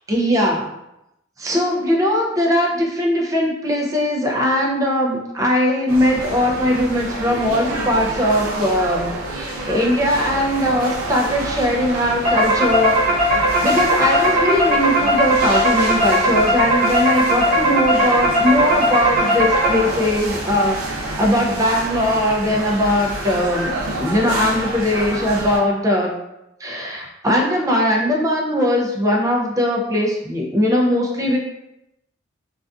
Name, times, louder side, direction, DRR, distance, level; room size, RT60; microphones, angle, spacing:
voice 1, 0.1-0.7 1.4-26.2 26.6-31.4, left 1 dB, 15° right, -1 dB, 0.4 m, -20 dB
sound 1, 5.9-25.6, right 2 dB, 90° right, 0.5 m, -28 dB
sound 2, 12.2-20.1, equal, 65° right, 0.9 m, -18 dB
2.4 x 2.4 x 2.3 m, 0.86 s
head